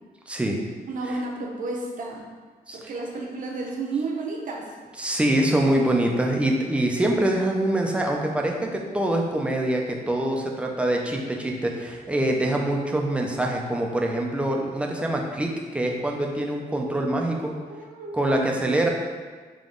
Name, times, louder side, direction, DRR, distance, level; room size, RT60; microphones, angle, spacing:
voice 1, 0.3-0.6 2.7-2.8 5.0-17.5 18.1-18.9, right 1 dB, 5° right, 0 dB, 0.4 m, -24 dB
voice 2, 0.9-2.2 2.7-4.6 17.7-18.7, right 3 dB, 55° right, -1 dB, 0.8 m, -32 dB
3.6 x 2.9 x 3.7 m, 1.5 s
wide cardioid pair, 145°, 16 cm